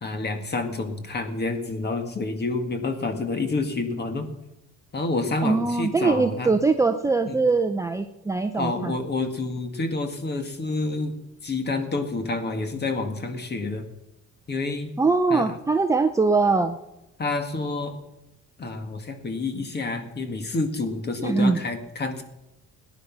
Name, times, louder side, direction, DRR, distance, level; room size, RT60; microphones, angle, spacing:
voice 1, 0.0-4.3 4.9-6.5 7.3-7.4 8.6-11.2 11.4-13.8 14.5-14.9 15.3-15.5 17.2-18.0 18.6-22.2, left 3 dB, 30° left, 7 dB, 1.9 m, -28 dB
voice 2, 5.4-9.0 15.0-16.8 21.2-21.6, right 3 dB, 10° right, 6 dB, 0.5 m, -22 dB
18.0 x 10.0 x 6.0 m, 0.95 s
cardioid pair, 140°, 32 cm